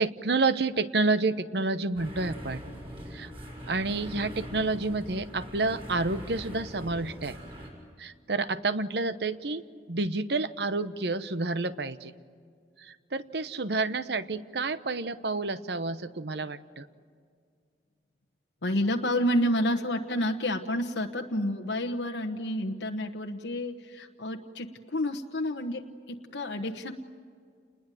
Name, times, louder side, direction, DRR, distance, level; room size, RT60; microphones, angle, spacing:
voice 1, 0.0-2.6 3.1-3.3 3.7-7.4 8.0-9.6 9.9-12.1 12.8-16.9, right 3 dB, 65° right, 13 dB, 1.0 m, -29 dB
sound 1, 2.0-7.7, equal, 30° right, 6.1 m, -42 dB
voice 2, 18.6-26.9, left 1 dB, 80° left, 3 dB, 1.2 m, -30 dB
29.0 x 21.0 x 9.2 m, 2.2 s
head